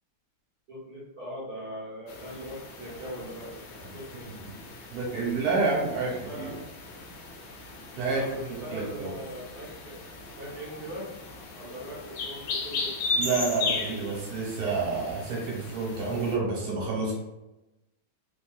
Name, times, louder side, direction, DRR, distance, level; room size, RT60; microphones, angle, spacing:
voice 1, 0.7-3.5 3.9-4.3 6.2-6.7 8.1-8.3 8.6-10.0 10.4-11.1 11.5-12.9, equal, 60° right, -6 dB, 1.1 m, -40 dB
sound 1, 2.1-16.4, left 3 dB, 75° left, 1.3 m, -37 dB
voice 2, 4.9-6.5 8.0-8.2 8.7-9.1 13.2-17.2, right 4 dB, 75° right, -3 dB, 1.7 m, -29 dB
3.5 x 2.6 x 2.3 m, 1.0 s
omnidirectional pair, 2.3 m